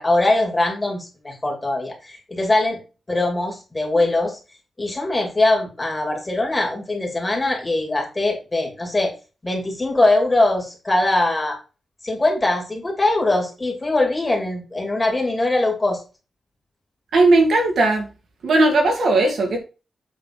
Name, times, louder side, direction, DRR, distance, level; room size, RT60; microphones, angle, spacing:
voice 1, 0.0-2.8 3.1-4.4 4.8-9.1 9.4-11.6 12.0-16.0, left 2 dB, 15° left, 1 dB, 2.6 m, -21 dB
voice 2, 17.1-18.1 18.4-19.6, right 2 dB, 75° right, 2 dB, 2.3 m, -17 dB
7.7 x 4.2 x 5.2 m, 0.31 s
wide cardioid pair, 160°, 0 cm